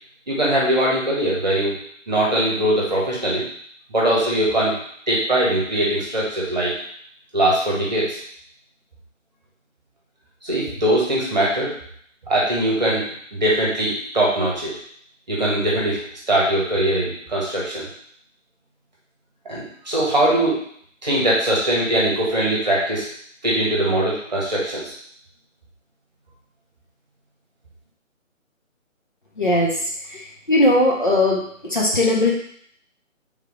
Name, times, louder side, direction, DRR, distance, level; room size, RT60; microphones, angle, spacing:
voice 1, 0.3-1.8 2.1-3.5 3.9-4.7 5.1-6.7 7.3-8.2 10.4-11.7 12.3-14.7 15.3-16.0 16.3-17.9 19.4-20.6 21.0-23.1 23.4-24.9, right 1 dB, 30° right, -5 dB, 1.1 m, -21 dB
voice 2, 29.4-29.7 30.1-30.2 30.5-31.4 31.7-32.3, left 1 dB, 40° left, -4 dB, 0.7 m, -18 dB
3.6 x 3.1 x 3.6 m, 0.63 s
figure-of-eight pair, 155°, 40 cm